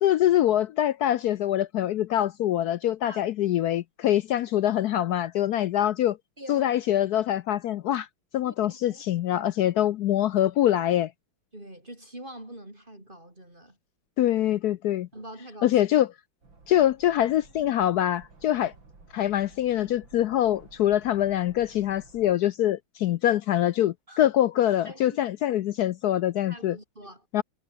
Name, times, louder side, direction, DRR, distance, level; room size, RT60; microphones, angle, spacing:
voice 1, 0.0-6.2 6.5-8.1 8.3-11.1 14.2-15.1 15.6-16.1 16.7-18.7 19.1-26.8 27.3-27.4, left 12 dB, 75° left, 0.9 m, -24 dB
voice 2, 6.4-6.7 8.4-9.0 11.5-13.8 15.1-15.8 24.1-24.3 24.9-25.2 26.4-27.3, right 1 dB, 25° right, 5.4 m, -44 dB
sound 1, 16.4-22.4, right 3 dB, 70° right, 5.7 m, -54 dB
omnidirectional pair, 2.2 m